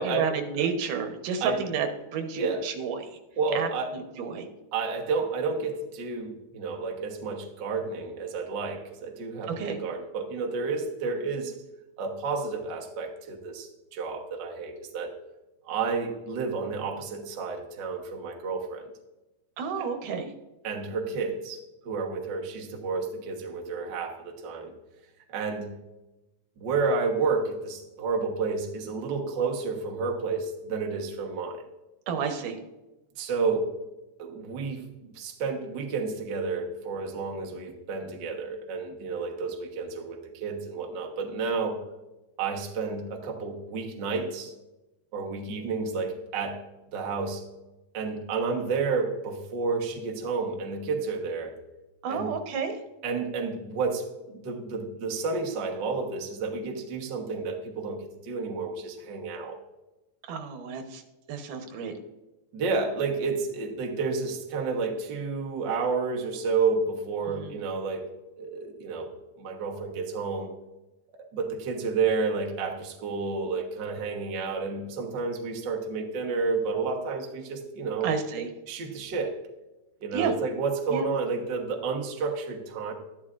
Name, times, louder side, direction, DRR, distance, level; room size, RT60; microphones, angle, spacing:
voice 1, 0.0-3.1 3.5-4.5 9.5-9.8 19.6-20.3 32.1-32.6 52.0-52.8 60.3-61.0 61.3-61.9 67.2-67.6 78.0-78.5 80.1-80.3 80.9-81.1, right 6 dB, 90° right, 6 dB, 2.6 m, -31 dB
voice 2, 3.4-3.9 4.7-11.5 12.0-15.1 15.7-18.9 19.8-19.9 20.6-21.6 21.8-24.7 25.3-25.8 26.6-31.7 33.2-33.7 34.2-34.9 35.1-41.8 42.4-44.5 45.1-46.6 46.9-47.4 47.9-51.5 52.1-52.3 53.0-59.6 62.5-68.1 68.4-69.1 69.4-70.5 71.2-78.1 78.7-79.4 80.0-82.9, right 4 dB, 55° right, 1 dB, 1.3 m, -30 dB
12.5 x 11.5 x 2.5 m, 1.0 s
omnidirectional pair, 3.6 m